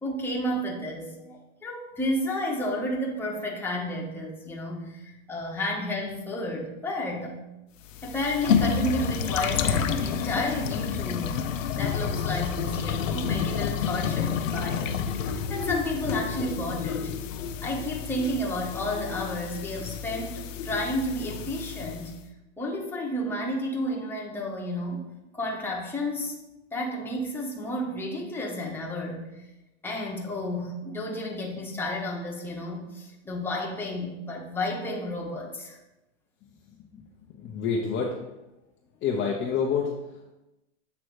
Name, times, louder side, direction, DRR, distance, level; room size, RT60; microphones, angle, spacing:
voice 1, 0.0-7.4 8.0-11.4 11.7-17.1 17.6-22.1 22.6-26.4 26.7-29.3 29.8-35.8, left 1 dB, 5° left, -2 dB, 1.2 m, -31 dB
sound 1, 7.8-22.1, left 7 dB, 90° left, 0.6 m, -29 dB
voice 2, 36.9-38.2 39.0-40.3, left 6 dB, 30° left, -1 dB, 0.8 m, -29 dB
7.7 x 3.1 x 4.7 m, 0.96 s
hypercardioid pair, 120°, 37 cm